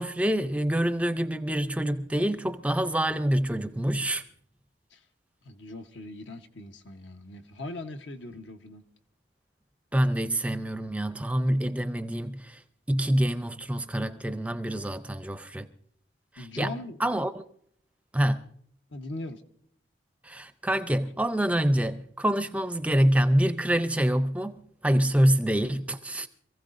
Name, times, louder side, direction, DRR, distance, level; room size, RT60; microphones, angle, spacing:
voice 1, 0.0-4.2 9.9-12.6 12.9-15.7 16.4-16.7 17.0-17.5 18.1-18.4 20.2-24.5 24.8-26.3, right 1 dB, 5° right, 0.5 m, -26 dB
voice 2, 5.4-8.8 16.4-17.0 18.9-19.4, left 2 dB, 80° left, 1.1 m, -40 dB
26.5 x 15.5 x 2.6 m
head